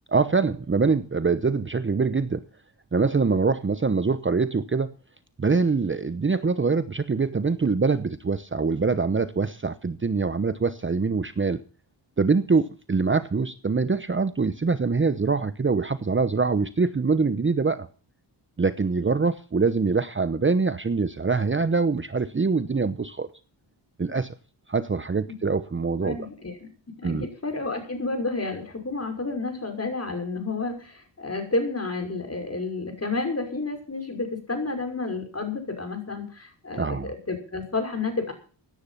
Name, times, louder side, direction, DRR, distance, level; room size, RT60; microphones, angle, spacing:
voice 1, 0.1-2.4 2.9-4.9 5.4-11.6 12.2-17.9 18.6-23.3 24.0-24.3 24.7-26.2 27.0-27.3 36.8-37.1, right 4 dB, 25° right, 13 dB, 0.9 m, -24 dB
voice 2, 26.0-26.7 27.0-38.3, left 3 dB, 30° left, 4 dB, 5.8 m, -30 dB
17.0 x 10.5 x 5.8 m, 0.39 s
cardioid pair, 80°, 45 cm